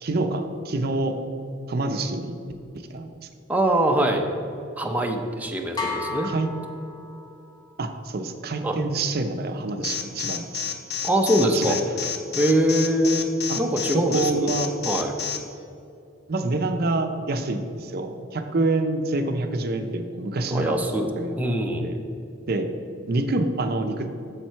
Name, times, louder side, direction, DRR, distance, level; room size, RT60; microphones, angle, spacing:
voice 1, 0.0-1.2 1.7-2.3 2.9-3.1 6.2-6.5 7.8-10.6 11.5-11.8 13.5-13.6 13.9-14.7 16.3-21.4 21.8-22.0 22.5-22.7 23.1-24.1, right 2 dB, 55° right, 7 dB, 0.6 m, -26 dB
voice 2, 3.5-4.2 4.8-6.3 8.6-8.8 11.0-11.8 12.3-13.3 13.6-14.5 14.8-15.1 20.5-21.1 21.4-22.0, right 1 dB, 10° right, 3 dB, 0.6 m, -23 dB
sound 1, 5.8-7.6, left 4 dB, 20° left, 1.0 m, -33 dB
Alarm, 9.8-15.4, left 8 dB, 60° left, 0.8 m, -29 dB
7.4 x 6.6 x 4.5 m, 2.6 s
head